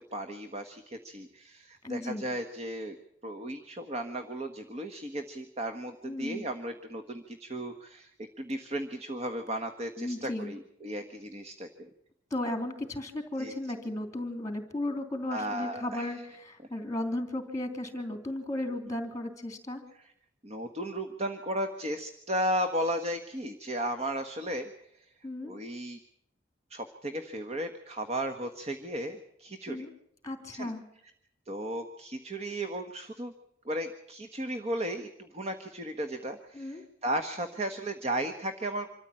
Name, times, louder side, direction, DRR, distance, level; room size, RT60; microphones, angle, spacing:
voice 1, 0.1-3.0 3.2-8.1 8.4-11.9 13.4-13.5 15.3-16.2 20.4-25.1 25.4-26.0 26.7-29.9 30.5-30.7 31.5-33.3 33.6-38.9, right 1 dB, 35° right, 7 dB, 1.4 m, -35 dB
voice 2, 1.8-2.3 6.0-6.4 10.0-10.5 12.3-19.8 25.2-25.5 29.7-29.9 30.2-30.8 36.5-36.8, left 1 dB, 15° left, 6 dB, 3.3 m, -35 dB
26.5 x 14.0 x 8.9 m, 0.75 s
head